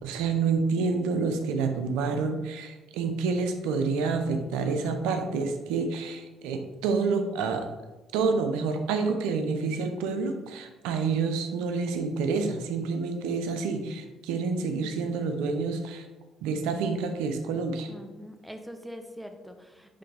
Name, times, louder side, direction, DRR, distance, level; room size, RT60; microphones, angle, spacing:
voice 1, 0.0-7.6 8.1-16.1 16.4-17.9, right 4 dB, 85° right, 6 dB, 0.7 m, -28 dB
voice 2, 17.9-20.0, equal, 5° right, 6 dB, 0.9 m, -43 dB
9.4 x 3.3 x 3.4 m, 1.2 s
supercardioid pair, 70°, 0 cm